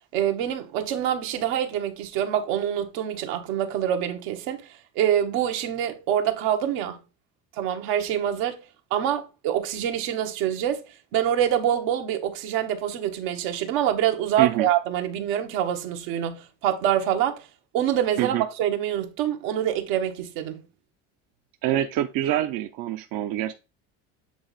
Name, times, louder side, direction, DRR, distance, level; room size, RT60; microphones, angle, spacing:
voice 1, 0.1-7.0 7.6-8.6 8.9-10.8 11.1-17.5 17.7-20.6, right 10 dB, 80° right, 1.1 m, -25 dB
voice 2, 14.4-14.7 18.2-18.4 21.6-23.5, right 13 dB, 65° right, 0.6 m, -25 dB
7.7 x 3.1 x 4.0 m
supercardioid pair, 90°, 38 cm